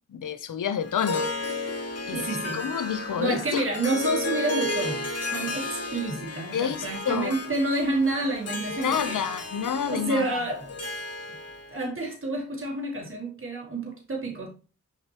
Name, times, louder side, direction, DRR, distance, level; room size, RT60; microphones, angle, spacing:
voice 1, 0.1-1.3 2.1-2.3 2.5-3.7 6.5-7.4 8.7-10.4, left 7 dB, 80° left, 0.7 m, -29 dB
Harp, 0.8-11.7, left 2 dB, 50° left, 1.1 m, -33 dB
voice 2, 2.1-2.6 3.2-9.2 9.9-10.8 11.7-14.5, right 2 dB, 40° right, 2.4 m, -29 dB
6.4 x 5.0 x 2.9 m
cardioid pair, 70°, 31 cm